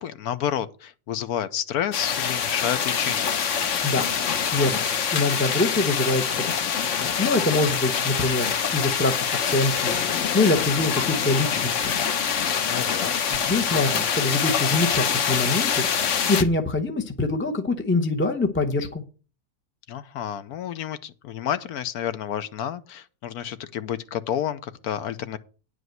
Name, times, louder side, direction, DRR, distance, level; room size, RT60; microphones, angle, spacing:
voice 1, 0.0-3.4 12.7-13.1 19.9-25.4, left 10 dB, 75° left, 1.2 m, -30 dB
sound 1, 1.9-16.4, left 7 dB, 55° left, 1.1 m, -25 dB
voice 2, 4.5-4.9 5.1-6.7 7.2-10.0 10.3-12.0 13.3-15.9 16.3-19.0, left 2 dB, 15° left, 0.5 m, -24 dB
9.6 x 5.1 x 7.8 m
omnidirectional pair, 1.7 m